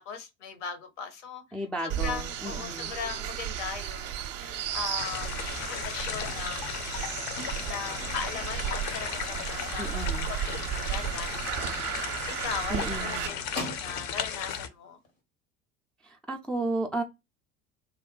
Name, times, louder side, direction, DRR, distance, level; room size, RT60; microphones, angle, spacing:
voice 1, 0.0-1.4 1.8-6.7 7.6-9.8 10.3-11.8 12.3-15.0, left 6 dB, 65° left, 0.9 m, -39 dB
voice 2, 1.5-2.9 9.8-10.3 12.7-13.3 16.0-17.0, right 1 dB, 5° left, 0.3 m, -33 dB
sound 1, 1.9-13.3, right 10 dB, 40° right, 0.6 m, -34 dB
sound 2, 5.0-14.7, left 7 dB, 45° left, 0.6 m, -36 dB
Squeak, 7.4-10.1 10.5-10.9 11.1-11.2 11.6-11.7 12.0-12.1 12.4-14.2 15.0-15.1, left 2 dB, 85° left, 1.3 m, -43 dB
2.6 x 2.2 x 3.7 m
figure-of-eight pair, 65°, 39 cm